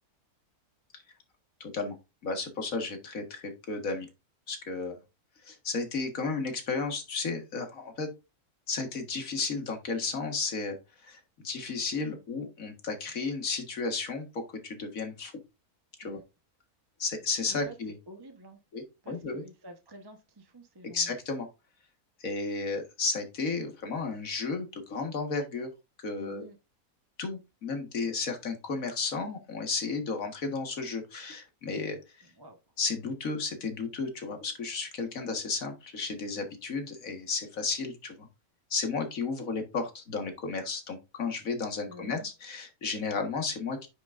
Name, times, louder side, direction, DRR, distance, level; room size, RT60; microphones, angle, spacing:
voice 1, 1.6-2.0 2.2-4.1 4.5-5.0 5.4-8.1 8.7-10.8 11.0-15.3 16.0-16.2 17.0-18.0 18.7-19.4 20.8-21.5 22.2-25.7 26.0-26.5 27.2-32.0 32.8-38.3 38.7-43.9, left 4 dB, 65° left, 5 dB, 2.0 m, -33 dB
voice 2, 18.1-18.6 19.0-21.2 26.2-26.6 32.4-32.6 41.9-42.3, right 1 dB, 20° right, 4 dB, 1.0 m, -49 dB
9.5 x 6.1 x 2.6 m, 0.26 s
omnidirectional pair, 1.6 m